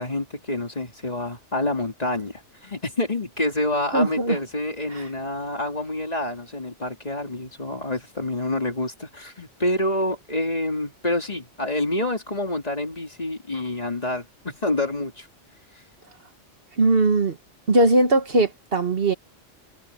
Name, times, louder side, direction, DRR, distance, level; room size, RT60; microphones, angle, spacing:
voice 1, 0.0-15.3, left 1 dB, 35° left, 2.7 m, -27 dB
voice 2, 3.9-4.4 4.9-5.0 16.8-17.4 17.7-19.1, right 2 dB, 55° right, 1.6 m, -20 dB
omnidirectional pair, 1.2 m